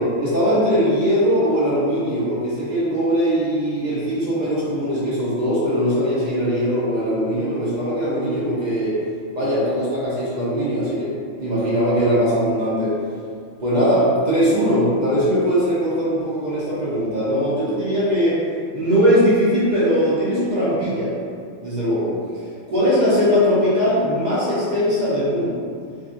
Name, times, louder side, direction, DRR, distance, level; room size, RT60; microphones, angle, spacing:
voice 1, 0.0-9.0 9.3-12.9 13.6-18.4 18.7-21.1 21.6-22.1 22.7-25.7, equal, 45° right, -9 dB, 0.6 m, -20 dB
2.5 x 2.2 x 2.5 m, 2.3 s
omnidirectional pair, 1.3 m